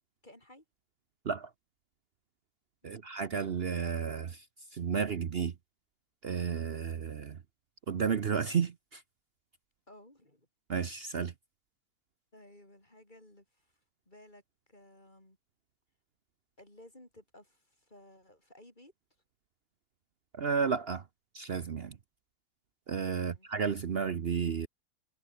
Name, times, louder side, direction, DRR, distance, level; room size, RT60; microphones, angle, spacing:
voice 1, 0.2-0.6 2.8-3.1 9.9-10.5 12.3-13.7 14.1-14.4 14.7-15.4 16.6-18.9 23.2-23.5, left 1 dB, 30° left, 6.1 m, -57 dB
voice 2, 2.8-4.4 4.7-5.5 6.2-7.4 7.9-9.0 10.7-11.3 20.3-21.0 21.3-22.0 22.9-24.7, right 6 dB, 50° right, 0.9 m, -32 dB
omnidirectional pair, 1.6 m